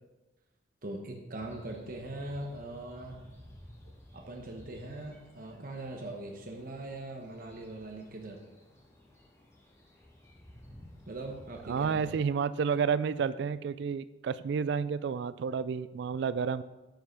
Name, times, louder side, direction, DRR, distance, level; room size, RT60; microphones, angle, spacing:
voice 1, 0.8-3.2 3.8-8.4 11.1-12.2, right 2 dB, 50° right, 2 dB, 1.0 m, -41 dB
sound 1, 1.4-12.1, equal, 15° left, 1.9 m, -55 dB
voice 2, 11.7-16.6, right 6 dB, 65° right, 16 dB, 0.3 m, -30 dB
10.5 x 5.5 x 6.5 m, 1.1 s
head